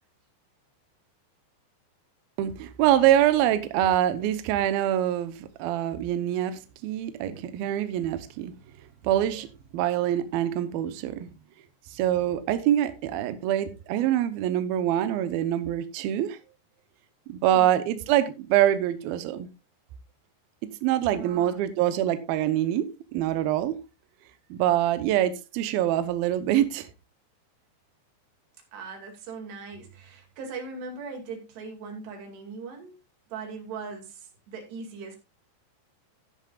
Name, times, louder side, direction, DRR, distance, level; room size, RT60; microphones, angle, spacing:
voice 1, 2.4-8.5 9.0-9.5 9.7-11.3 11.9-16.4 17.3-19.5 20.8-23.8 24.5-26.9, right 12 dB, 80° right, 2.2 m, -25 dB
voice 2, 21.1-21.6 28.7-33.0 33.3-35.2, right 4 dB, 65° right, 4.3 m, -39 dB
13.0 x 10.5 x 2.4 m
omnidirectional pair, 5.4 m